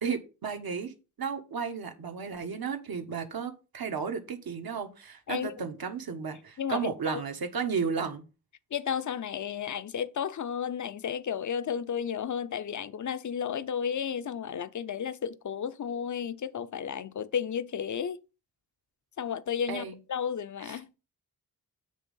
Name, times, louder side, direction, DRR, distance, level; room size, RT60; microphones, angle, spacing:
voice 1, 0.0-8.2 19.7-20.0, right 6 dB, 60° right, 1.4 m, -33 dB
voice 2, 5.3-5.6 6.6-7.2 8.7-18.2 19.2-20.9, left 8 dB, 45° left, 0.7 m, -33 dB
8.3 x 3.1 x 5.5 m
cardioid pair, 50°, 41 cm